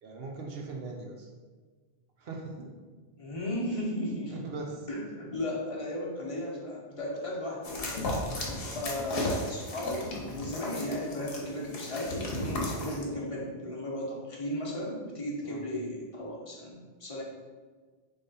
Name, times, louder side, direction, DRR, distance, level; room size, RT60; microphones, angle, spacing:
voice 1, 0.0-1.3 2.2-2.7 4.3-4.9 8.6-8.8 15.4-15.6, right 3 dB, 70° right, 0 dB, 0.9 m, -40 dB
voice 2, 3.2-4.4 4.9-7.9 8.4-17.2, left 1 dB, 35° left, -3 dB, 1.0 m, -35 dB
sound 1, 7.6-13.0, left 1 dB, 65° left, 1.1 m, -34 dB
3.7 x 3.4 x 4.0 m, 1.4 s
omnidirectional pair, 1.1 m